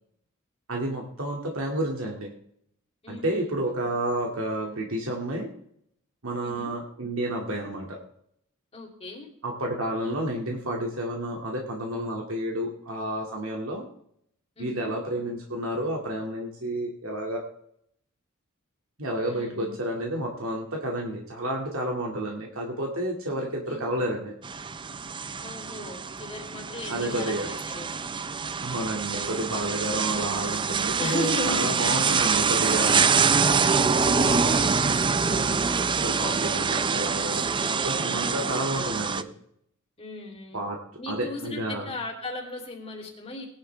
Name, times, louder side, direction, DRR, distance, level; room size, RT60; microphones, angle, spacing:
voice 1, 0.7-2.3 3.1-5.5 6.2-8.0 9.4-13.9 14.6-17.4 19.0-24.4 26.9-27.5 28.6-33.1 34.2-39.3 40.5-40.8 41.1-41.9, right 1 dB, 70° right, 0 dB, 2.1 m, -30 dB
voice 2, 3.0-3.6 6.4-6.8 8.7-9.3 14.6-15.0 19.3-19.8 23.3-24.0 25.4-27.4 27.6-27.9 29.1-29.4 31.0-32.0 33.9-34.4 38.3-39.0 40.0-40.6 41.0-43.5, left 2 dB, 30° left, 1 dB, 3.0 m, -37 dB
sound 1, 24.4-39.2, right 5 dB, 20° right, 0.4 m, -25 dB
19.0 x 11.0 x 3.3 m, 0.71 s
head